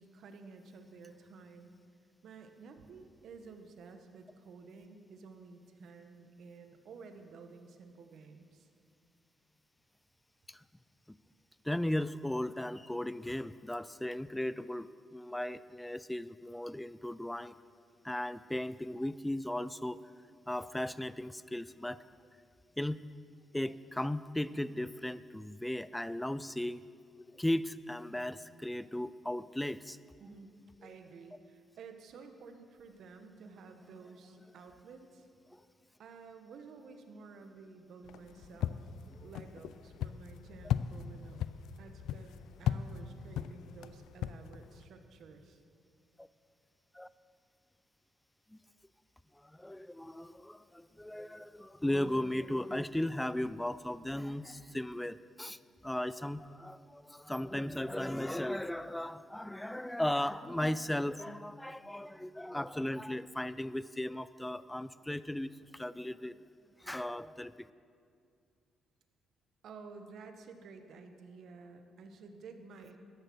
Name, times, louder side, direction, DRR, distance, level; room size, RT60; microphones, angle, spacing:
voice 1, 0.0-1.7 2.2-8.7 30.2-30.5 30.8-35.3 36.0-38.8 39.2-41.4 41.8-45.6 69.6-73.0, right 4 dB, 70° right, 6 dB, 1.3 m, -52 dB
voice 2, 11.6-17.5 18.0-20.0 20.5-22.0 22.8-23.1 23.5-26.8 27.3-30.0 35.5-35.6 46.2-46.3 46.9-47.1 48.5-48.6 49.3-66.4 66.8-67.7, left 1 dB, 5° left, 16 dB, 0.4 m, -36 dB
sound 1, 38.0-44.8, left 10 dB, 85° left, 0.4 m, -38 dB
13.5 x 10.5 x 6.3 m, 2.3 s
cardioid pair, 90°, 0 cm